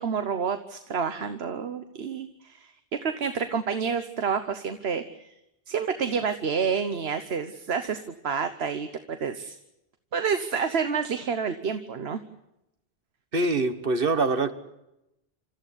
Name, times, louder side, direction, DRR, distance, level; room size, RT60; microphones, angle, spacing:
voice 1, 0.0-2.7 3.0-5.3 5.7-9.6 10.1-12.2, right 6 dB, 80° right, 9 dB, 1.3 m, -29 dB
voice 2, 13.3-14.5, right 3 dB, 60° right, 10 dB, 1.6 m, -24 dB
28.5 x 14.0 x 9.8 m, 0.90 s
omnidirectional pair, 1.0 m